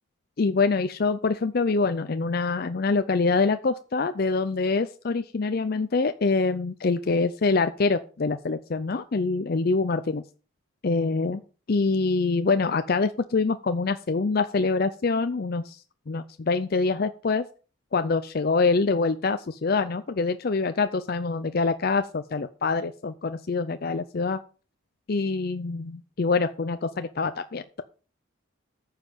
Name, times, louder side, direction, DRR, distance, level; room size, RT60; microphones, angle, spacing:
voice 1, 0.4-10.2 10.8-11.4 11.7-17.4 17.9-24.4 25.1-27.8, left 4 dB, 45° left, 10 dB, 0.5 m, -25 dB
9.1 x 5.6 x 7.1 m, 0.37 s
head